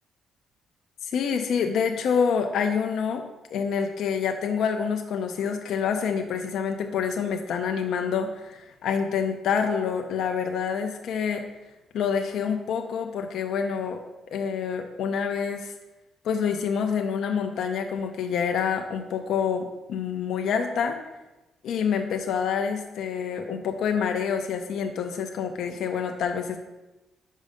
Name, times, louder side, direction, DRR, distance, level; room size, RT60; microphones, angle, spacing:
voice 1, 1.0-3.2 3.5-11.4 11.9-14.0 14.3-15.7 16.2-21.0 21.6-26.6, left 6 dB, 75° left, 4 dB, 0.6 m, -27 dB
5.4 x 5.2 x 5.0 m, 1.1 s
cardioid pair, 90°, 0 cm